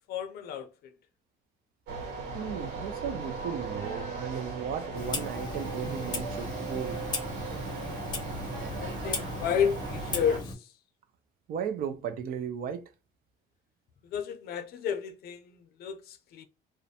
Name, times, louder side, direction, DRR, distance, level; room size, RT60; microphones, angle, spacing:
voice 1, 0.1-0.9 8.7-10.7 14.0-16.4, left 8 dB, 70° left, 0.5 m, -32 dB
sound 1, 1.9-10.4, right 4 dB, 85° right, 1.0 m, -37 dB
voice 2, 2.3-7.0 11.5-12.8, right 7 dB, 60° right, 0.5 m, -35 dB
Clock, 4.9-10.5, left 2 dB, 25° left, 0.7 m, -37 dB
2.4 x 2.1 x 2.7 m
cardioid pair, 110°, 17 cm